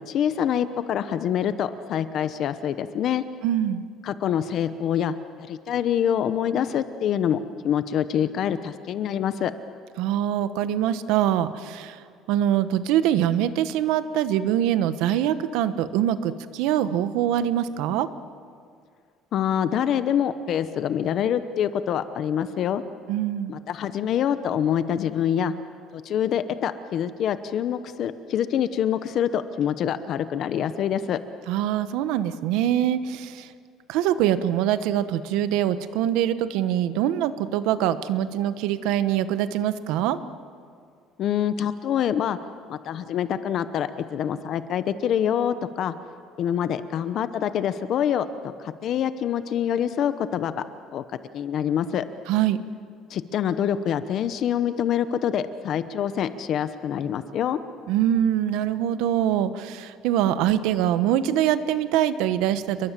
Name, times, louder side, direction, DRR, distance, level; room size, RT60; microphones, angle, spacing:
voice 1, 0.0-3.2 4.0-9.5 19.3-22.8 23.5-25.5 25.9-31.2 41.2-42.4 42.7-45.9 46.4-50.6 50.9-51.0 51.3-52.1 53.1-57.6, left 9 dB, 45° left, 12 dB, 0.9 m, -25 dB
voice 2, 3.4-3.8 10.0-12.0 12.3-18.1 23.1-23.6 31.5-33.5 33.9-40.2 52.3-52.6 57.9-62.9, right 11 dB, 80° right, 12 dB, 1.1 m, -24 dB
29.0 x 22.5 x 7.5 m, 2.2 s
cardioid pair, 165°, 0 cm